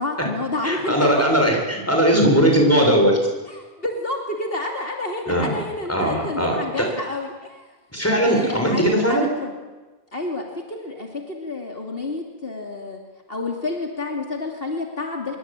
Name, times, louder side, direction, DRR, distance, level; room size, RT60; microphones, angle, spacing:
voice 1, 0.0-1.2 3.5-7.7 8.2-9.5 10.1-13.0 13.3-15.4, left 2 dB, 65° left, 1 dB, 3.2 m, -29 dB
voice 2, 0.6-3.2 5.3-5.5 5.9-6.9 7.9-9.2, equal, 15° left, 2 dB, 7.1 m, -19 dB
26.0 x 23.5 x 9.1 m, 1.2 s
omnidirectional pair, 1.1 m